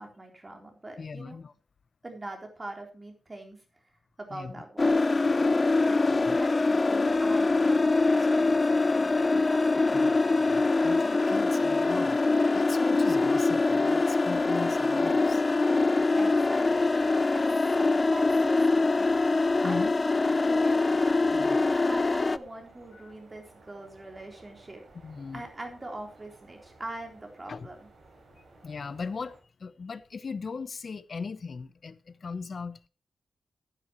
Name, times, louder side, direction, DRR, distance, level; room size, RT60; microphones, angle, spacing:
voice 1, 0.0-1.4 2.0-3.6 4.2-5.2 5.9-10.0 16.1-17.1 17.3-21.0 21.4-24.8 25.3-27.9, right 2 dB, 25° right, 3.7 m, -43 dB
voice 2, 1.0-1.5 4.3-4.6 6.3-6.4 9.9-12.2 12.5-15.4 19.6-19.9 21.3-21.7 22.9-23.1 25.0-25.4 27.5-27.7 28.4-32.9, left 5 dB, 55° left, 0.8 m, -39 dB
sound 1, 4.8-22.4, left 3 dB, 30° left, 0.5 m, -24 dB
sound 2, 21.0-29.4, right 2 dB, 65° right, 5.3 m, -56 dB
15.0 x 9.5 x 3.1 m
wide cardioid pair, 110°, 0 cm